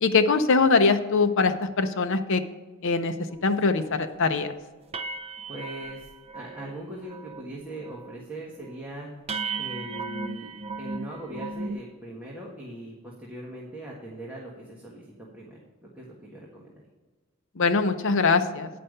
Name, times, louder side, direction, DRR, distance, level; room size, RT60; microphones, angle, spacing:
voice 1, 0.0-2.4 2.8-3.1 3.4-4.5 17.6-18.7, left 4 dB, 60° left, 9 dB, 0.7 m, -22 dB
Hit metal pan cover bell vibration deep, 3.4-3.5 3.9-4.1 4.4-4.5 4.9-6.7 7.0-7.5 7.8-8.2 8.6-8.7 9.3-11.8, right 4 dB, 30° right, 0.4 m, -36 dB
voice 2, 5.5-9.1 9.5-10.5 10.8-15.1 15.3-16.7, right 1 dB, 10° right, -5 dB, 1.4 m, -40 dB
9.5 x 5.6 x 6.5 m, 1.3 s
head